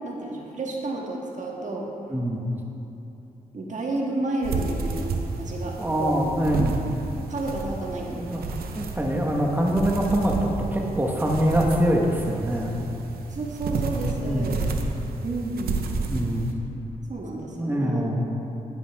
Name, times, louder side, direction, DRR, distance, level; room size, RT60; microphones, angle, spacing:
voice 1, 0.0-1.9 3.5-6.3 7.3-8.5 13.3-14.6 15.2-15.8 17.1-18.1, right 2 dB, 55° right, -1 dB, 1.6 m, -31 dB
voice 2, 2.1-2.4 5.8-6.7 8.1-8.4 8.8-12.8 13.7-14.6 16.1-16.5 17.6-18.3, equal, 10° right, -1 dB, 1.3 m, -24 dB
sound 1, 4.4-16.5, right 4 dB, 90° right, 0.7 m, -31 dB
10.5 x 10.5 x 3.5 m, 2.9 s
cardioid pair, 60°, 15 cm